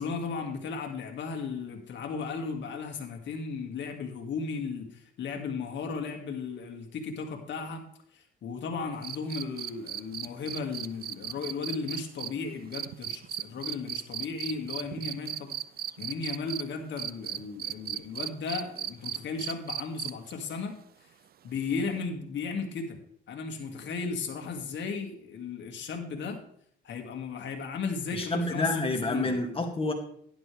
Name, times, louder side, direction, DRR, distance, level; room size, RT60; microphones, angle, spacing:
voice 1, 0.0-7.8 8.1-15.5 16.0-20.8 21.4-23.0 23.3-26.4 26.8-29.3, left 5 dB, 65° left, 4 dB, 2.2 m, -35 dB
sound 1, 9.0-16.6 17.0-20.3 22.0-22.1, right 10 dB, 50° right, 0.5 m, -36 dB
voice 2, 28.1-29.9, left 2 dB, 30° left, 3 dB, 2.4 m, -28 dB
12.0 x 11.0 x 3.4 m, 0.64 s
cardioid pair, 90°, 20 cm